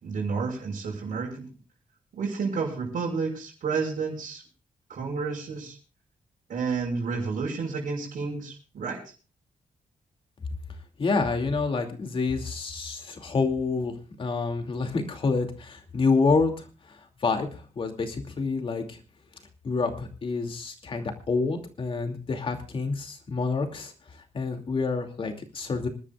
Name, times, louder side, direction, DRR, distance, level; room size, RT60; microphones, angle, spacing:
voice 1, 0.0-1.5 2.1-4.4 4.9-5.8 6.5-9.0, right 5 dB, 80° right, -3 dB, 5.7 m, -30 dB
voice 2, 11.0-19.0 19.6-23.9 24.3-25.9, left 4 dB, 40° left, 5 dB, 2.6 m, -28 dB
26.5 x 12.5 x 2.4 m, 0.33 s
wide cardioid pair, 175°, 14 cm